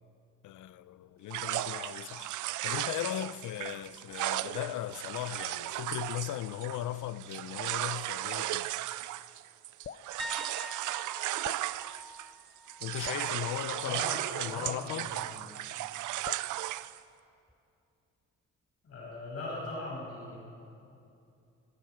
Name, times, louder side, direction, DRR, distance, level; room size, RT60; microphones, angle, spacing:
voice 1, 0.4-2.3 2.6-8.7 12.8-14.0 14.4-15.1, left 13 dB, 80° left, 0.8 m, -37 dB
sound 1, 1.3-12.4 12.7-17.0, right 15 dB, 80° right, 0.6 m, -36 dB
Drip, 9.8-10.1 11.4-11.7 13.0-13.3 14.6-14.9 16.2-16.5, left 8 dB, 35° left, 0.6 m, -44 dB
sound 2, 10.2-13.9 14.3-14.6 17.5-17.6, equal, ahead, 0.7 m, -46 dB
voice 2, 13.8-15.5 18.8-20.4, left 2 dB, 55° left, 6.7 m, -40 dB
29.0 x 25.5 x 4.7 m
cardioid pair, 90°, 30 cm